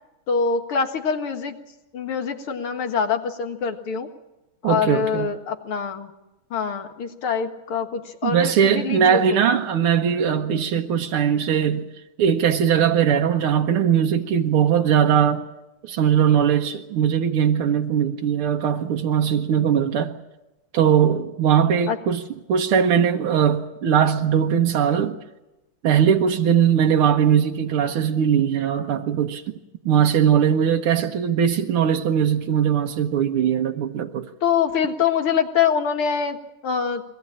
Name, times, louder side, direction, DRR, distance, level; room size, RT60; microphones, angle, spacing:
voice 1, 0.3-1.6 1.9-4.1 4.6-6.1 6.5-9.6 21.9-22.0 34.4-37.0, left 6 dB, 85° left, 2.5 m, -24 dB
voice 2, 4.6-5.3 8.2-11.9 12.2-15.5 15.8-20.2 20.7-22.2 22.5-25.2 25.8-29.5 29.9-34.3, right 8 dB, 85° right, 2.0 m, -20 dB
23.0 x 18.0 x 8.7 m
omnidirectional pair, 2.3 m